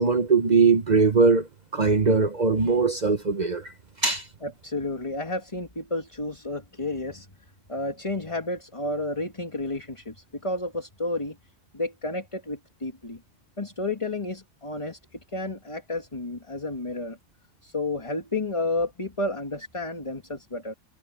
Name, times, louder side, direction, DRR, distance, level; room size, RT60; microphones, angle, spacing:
voice 1, 0.0-1.5 1.7-3.7 4.0-4.2, right 4 dB, 40° right, 0.9 m, -20 dB
voice 2, 4.4-7.3 7.7-11.4 11.7-13.2 13.6-15.0 15.3-17.2 17.6-20.7, left 2 dB, 25° left, 2.0 m, -31 dB
omnidirectional pair, 1.3 m